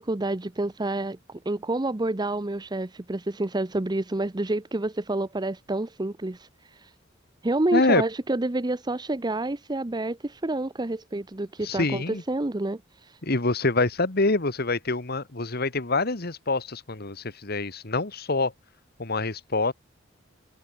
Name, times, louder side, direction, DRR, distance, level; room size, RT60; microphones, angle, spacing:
voice 1, 0.0-6.9 7.4-13.2, right 2 dB, 20° right, 0.7 m, -29 dB
voice 2, 7.7-8.0 11.6-12.2 13.2-18.5 19.0-19.7, left 3 dB, 50° left, 1.7 m, -25 dB
head